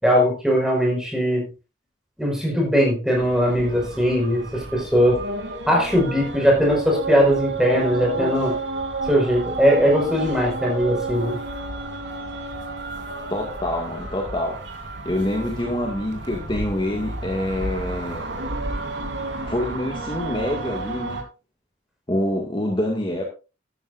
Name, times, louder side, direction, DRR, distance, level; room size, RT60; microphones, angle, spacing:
voice 1, 0.0-1.5 2.2-5.2 5.7-8.5 9.1-11.4, equal, 5° right, -1 dB, 5.1 m, -20 dB
sound 1, 3.2-21.2, right 3 dB, 75° right, 3.1 m, -31 dB
voice 2, 13.3-14.6 15.0-18.2 19.4-21.2 22.1-23.2, left 1 dB, 25° left, 0 dB, 2.0 m, -26 dB
13.0 x 13.0 x 2.6 m, 0.31 s
head